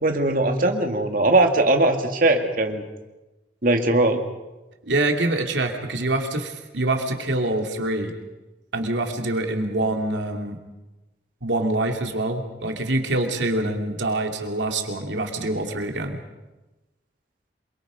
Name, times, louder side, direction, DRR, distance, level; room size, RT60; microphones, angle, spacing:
voice 1, 0.0-2.8 3.6-4.2, right 2 dB, 50° right, 4 dB, 2.3 m, -20 dB
voice 2, 4.8-8.1 8.7-10.6 11.4-16.2, right 2 dB, 90° right, 4 dB, 2.8 m, -25 dB
27.0 x 23.5 x 5.2 m, 1.1 s
head